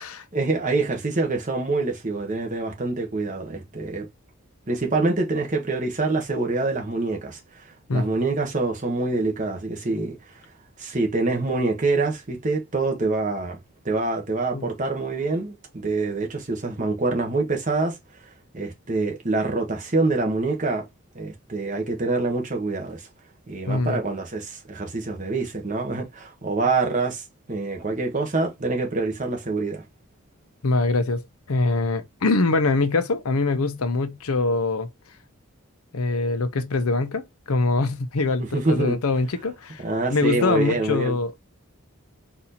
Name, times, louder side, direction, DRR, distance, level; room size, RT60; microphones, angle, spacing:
voice 1, 0.3-4.1 4.7-10.4 10.8-13.6 13.8-18.0 18.2-20.8 21.1-23.1 23.5-29.8 38.4-39.0 39.8-41.2, right 3 dB, 35° right, 1.0 m, -26 dB
voice 2, 23.7-24.0 30.6-34.9 35.9-39.8 40.1-41.4, left 3 dB, 85° left, 0.7 m, -23 dB
4.3 x 2.6 x 4.1 m
head